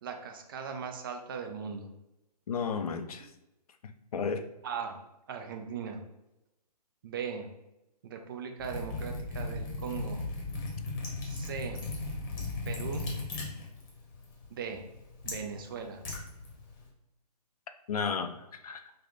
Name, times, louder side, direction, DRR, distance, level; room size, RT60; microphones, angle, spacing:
voice 1, 0.0-1.9 4.6-5.0 5.3-6.0 7.0-7.5 8.0-10.2 11.2-11.8 12.6-13.1 14.5-14.8 15.2-16.0, right 6 dB, 35° right, 4 dB, 0.4 m, -38 dB
voice 2, 2.5-3.3 3.8-4.4 17.9-18.4 18.6-18.8, left 6 dB, 65° left, 8 dB, 0.5 m, -33 dB
Liquid, 8.6-16.9, left 2 dB, 30° left, 0.9 m, -38 dB
3.4 x 2.2 x 3.7 m, 0.91 s
hypercardioid pair, 145°, 21 cm